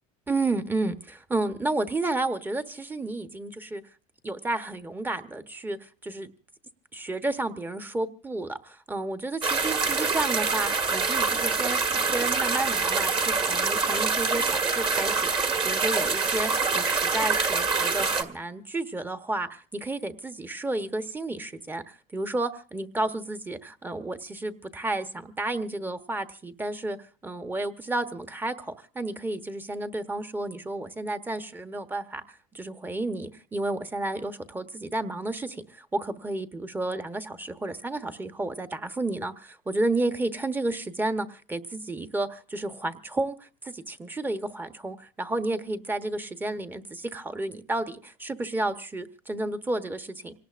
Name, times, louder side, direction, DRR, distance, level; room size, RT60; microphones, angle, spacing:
voice 1, 0.3-3.8 4.2-6.3 6.9-11.8 12.1-27.0 27.2-50.3, right 2 dB, 10° right, 10 dB, 1.1 m, -31 dB
sound 1, 9.4-18.2, right 4 dB, 30° right, 1.8 m, -25 dB
26.0 x 18.5 x 2.5 m, 0.39 s
cardioid pair, 125°, 17 cm